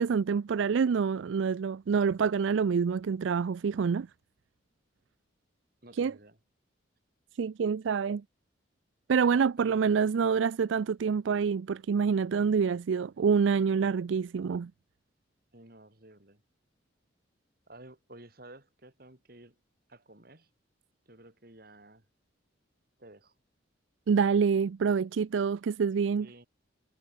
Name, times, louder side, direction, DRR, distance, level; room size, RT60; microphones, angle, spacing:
voice 1, 0.0-4.1 6.0-6.1 7.4-8.2 9.1-14.7 24.1-26.3, right 6 dB, 80° right, 0.4 m, -27 dB
voice 2, 5.8-6.4 9.6-9.8 15.5-16.4 17.7-19.5 19.9-20.5 21.1-22.0 23.0-23.3 26.2-26.5, right 1 dB, 50° right, 4.3 m, -52 dB
head